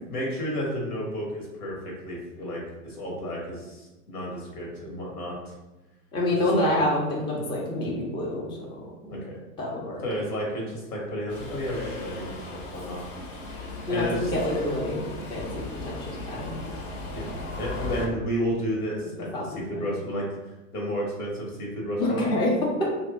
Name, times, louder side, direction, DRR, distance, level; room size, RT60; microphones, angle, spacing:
voice 1, 0.1-5.5 6.3-6.7 9.1-9.4 10.0-12.4 12.7-13.0 13.5-13.6 13.9-14.4 17.1-17.3 17.6-20.3 20.7-22.2, equal, 80° left, -2 dB, 1.4 m, -32 dB
voice 2, 6.1-8.6 9.1-9.2 9.6-10.0 13.9-15.0 15.3-15.5 15.8-16.6 19.3-19.9 22.0-22.5, left 1 dB, 10° left, -4 dB, 0.5 m, -27 dB
Subway metro underground, 11.3-18.1, left 2 dB, 45° left, 0.8 m, -37 dB
2.8 x 2.5 x 3.4 m, 1.0 s
hypercardioid pair, 110°, 44 cm